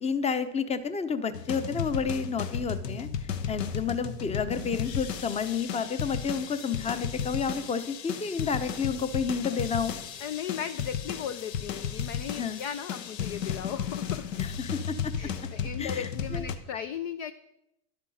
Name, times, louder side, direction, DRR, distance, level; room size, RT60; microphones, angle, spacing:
voice 1, 0.0-3.1 3.5-9.9 12.3-12.6 14.4-15.1 15.8-16.4, left 6 dB, 15° left, 12 dB, 0.7 m, -30 dB
sound 1, 1.3-16.6, left 7 dB, 75° left, 1.2 m, -34 dB
voice 2, 10.2-14.3 15.2-17.3, left 8 dB, 30° left, 12 dB, 0.3 m, -36 dB
11.0 x 8.3 x 6.3 m, 0.83 s
hypercardioid pair, 100°, 50 cm